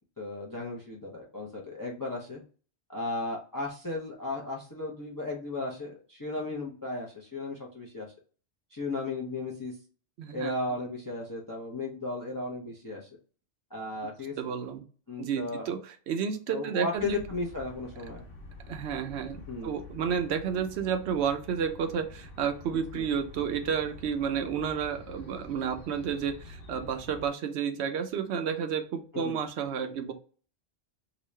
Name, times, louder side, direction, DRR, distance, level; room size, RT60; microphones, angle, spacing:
voice 1, 0.2-2.4 2.9-8.1 8.7-9.8 10.3-13.1 13.7-14.3 15.1-15.7 16.5-18.2 19.5-19.7 22.9-23.1 29.1-29.4, left 2 dB, 25° left, -2 dB, 0.6 m, -35 dB
voice 2, 10.2-10.5 14.4-14.8 15.2-17.2 18.7-30.1, right 7 dB, 75° right, 7 dB, 0.8 m, -31 dB
sound 1, 16.9-27.3, left 2 dB, 55° left, 1.1 m, -47 dB
3.9 x 2.3 x 3.1 m, 0.40 s
omnidirectional pair, 1.2 m